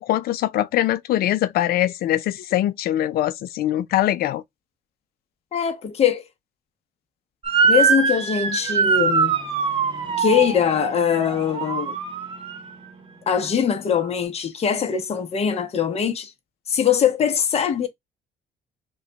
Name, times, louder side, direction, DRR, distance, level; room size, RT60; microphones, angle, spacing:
voice 1, 0.0-4.4, left 13 dB, 65° left, 0.4 m, -22 dB
voice 2, 5.5-6.2 7.6-9.4 10.2-12.0 13.3-16.3 16.7-17.9, left 8 dB, 40° left, 0.8 m, -22 dB
Motor vehicle (road) / Siren, 7.4-12.7, right 5 dB, 30° right, 0.9 m, -22 dB
3.2 x 2.3 x 3.8 m
cardioid pair, 110°, 17 cm